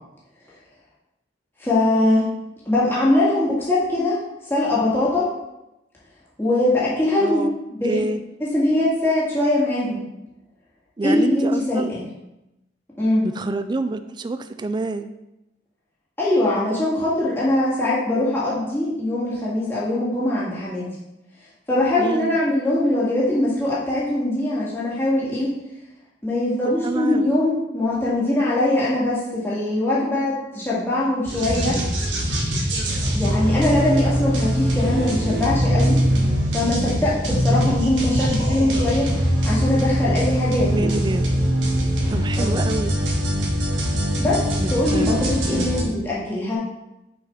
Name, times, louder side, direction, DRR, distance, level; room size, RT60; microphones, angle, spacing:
voice 1, 1.6-2.3 2.7-4.2 4.5-5.3 6.4-8.0 8.4-10.0 11.0-12.0 13.0-13.3 16.2-20.9 21.7-25.5 26.2-31.8 33.1-36.0 36.5-39.1 39.4-41.0 42.4-42.6 44.2-44.4 44.7-46.6, left 1 dB, 15° left, -8 dB, 1.9 m, -21 dB
voice 2, 7.2-7.5 7.8-8.2 11.0-11.9 13.2-15.1 22.0-22.4 26.6-27.3 40.7-41.3 42.1-43.0 44.6-45.3 45.6-45.7, right 2 dB, 25° right, 10 dB, 0.3 m, -27 dB
sound 1, 31.3-45.8, equal, 85° right, 1.5 m, -22 dB
6.2 x 5.7 x 3.5 m, 0.92 s
head